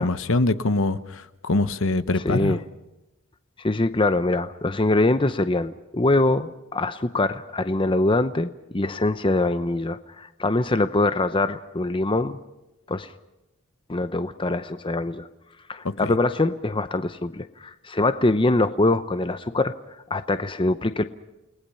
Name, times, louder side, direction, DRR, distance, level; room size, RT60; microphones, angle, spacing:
voice 1, 0.0-2.6 15.8-16.1, left 2 dB, 60° left, 0.9 m, -24 dB
voice 2, 2.2-2.6 3.6-12.4 12.9-13.1 13.9-15.3 15.7-19.7 20.1-21.0, left 2 dB, 25° left, 0.7 m, -23 dB
29.5 x 19.5 x 5.6 m
head